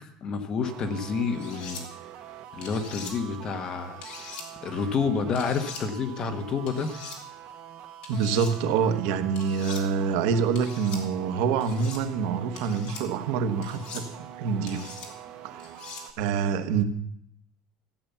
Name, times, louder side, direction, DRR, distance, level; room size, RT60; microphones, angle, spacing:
voice 1, 0.0-1.8 2.5-4.0 4.6-6.9, left 5 dB, 30° left, 7 dB, 1.3 m, -29 dB
sound 1, 0.6-16.1, right 10 dB, 45° right, 1.2 m, -44 dB
sound 2, 1.4-1.8 2.6-3.1 4.0-4.5 5.4-5.8 6.7-7.2 8.0-8.5 9.4-9.8 10.6-11.0 11.6-12.0 12.6-13.0 13.6-14.1 14.7-15.1 15.6-16.0, left 5 dB, 45° left, 2.8 m, -42 dB
voice 2, 8.1-14.9 15.4-15.7 16.2-16.8, right 6 dB, 70° right, 8 dB, 1.3 m, -26 dB
14.5 x 8.8 x 7.0 m, 0.73 s
cardioid pair, 170°, 2 cm